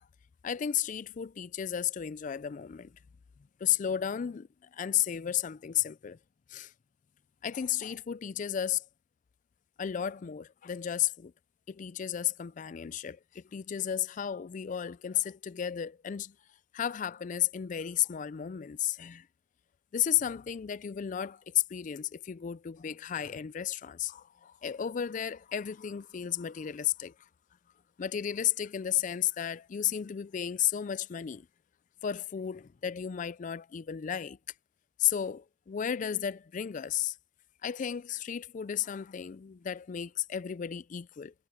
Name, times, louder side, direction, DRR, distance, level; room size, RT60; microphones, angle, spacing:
voice 1, 0.4-3.0 3.6-6.2 6.5-6.7 7.4-8.8 9.8-11.3 11.7-16.3 16.7-19.3 19.9-27.1 28.0-31.5 32.0-34.4 35.0-37.2 37.6-41.3, left 10 dB, 40° left, 0.3 m, -33 dB
head